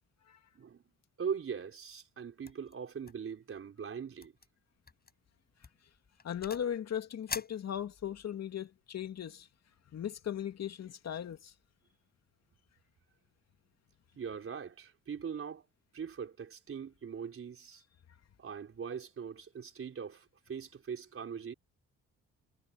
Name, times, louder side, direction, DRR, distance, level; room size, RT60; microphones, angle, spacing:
voice 1, 1.2-4.3 14.1-15.7 15.9-17.8 18.4-21.5, right 7 dB, 45° right, 4.5 m, -41 dB
sound 1, 2.4-2.7 3.0-3.3 3.6-3.7 4.2-4.5 4.9-5.1 5.6-6.8 7.3-8.3, left 4 dB, 30° left, 7.1 m, -44 dB
voice 2, 6.2-9.5 9.9-11.5, left 9 dB, 60° left, 2.7 m, -38 dB
cardioid pair, 90°, 30 cm